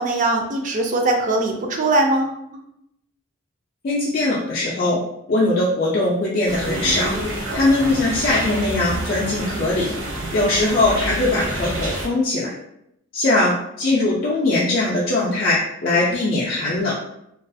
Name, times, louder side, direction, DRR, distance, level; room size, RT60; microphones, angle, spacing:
voice 1, 0.0-2.4, right 2 dB, 40° right, 3 dB, 0.3 m, -21 dB
voice 2, 3.8-5.0 5.3-7.1 7.5-9.9 10.3-12.5 13.1-17.0, left 2 dB, 45° left, -5 dB, 0.4 m, -20 dB
sound 1, 6.5-12.1, right 1 dB, 75° right, 1.0 m, -28 dB
2.3 x 2.3 x 2.6 m, 0.78 s
head